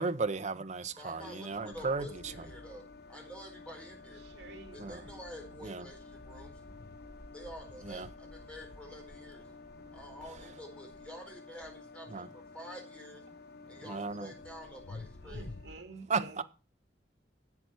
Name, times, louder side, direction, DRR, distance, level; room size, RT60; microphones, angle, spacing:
voice 1, 0.0-2.1 4.8-5.0 5.6-5.8 7.8-8.1 12.1-12.3 13.8-14.3 16.1-16.4, right 4 dB, 40° right, 0.8 m, -34 dB
voice 2, 1.0-2.8 3.1-4.2 4.7-6.0 6.3-6.5 7.3-9.5 9.9-13.2 13.7-15.5, equal, 5° left, 4.6 m, -48 dB
sound 1, 1.2-15.8, left 3 dB, 60° left, 0.9 m, -50 dB
voice 3, 4.2-5.2 15.2-16.4, right 3 dB, 75° right, 2.5 m, -50 dB
11.0 x 8.1 x 4.6 m
head